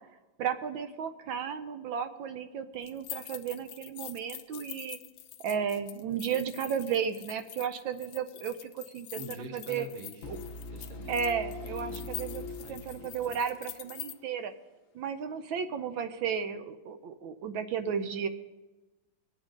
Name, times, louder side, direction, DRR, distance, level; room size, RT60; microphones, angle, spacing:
voice 1, 0.4-5.0 5.4-9.9 10.3-10.4 11.1-12.4 12.7-14.5 14.9-18.3, right 7 dB, 80° right, 9 dB, 1.5 m, -34 dB
sound 1, 2.8-14.1, left 13 dB, 90° left, 1.4 m, -45 dB
voice 2, 9.1-10.3 10.7-11.2 11.6-13.3, right 2 dB, 30° right, 5 dB, 1.1 m, -46 dB
sound 2, 10.2-14.1, left 3 dB, 55° left, 1.0 m, -42 dB
22.5 x 8.6 x 3.8 m, 1.1 s
omnidirectional pair, 2.1 m